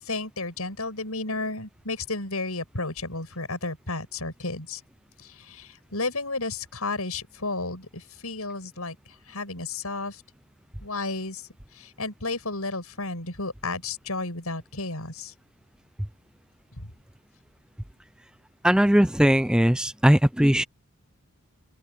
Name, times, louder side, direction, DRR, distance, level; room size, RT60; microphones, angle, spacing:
voice 1, 0.0-4.8 5.2-10.2 10.8-15.3 16.8-16.9, left 3 dB, 80° left, 7.9 m, -33 dB
voice 2, 18.6-20.6, equal, 5° right, 0.5 m, -19 dB
open air
head